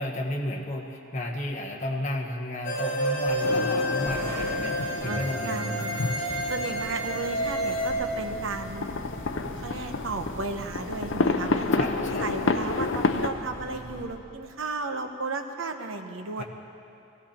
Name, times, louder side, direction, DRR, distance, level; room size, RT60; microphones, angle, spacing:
voice 1, 0.0-5.6 11.8-12.3 16.4-16.5, left 1 dB, 35° left, 0 dB, 1.3 m, -33 dB
sound 1, 2.6-7.9, equal, 55° left, 2.4 m, -29 dB
sound 2, 3.2-14.0, equal, 15° left, 3.7 m, -41 dB
sound 3, 3.4-13.3, left 3 dB, 70° left, 0.6 m, -30 dB
voice 2, 4.3-6.0 6.5-8.9 9.6-16.4, right 3 dB, 85° right, 6 dB, 1.0 m, -34 dB
17.5 x 15.5 x 4.3 m, 2.8 s
head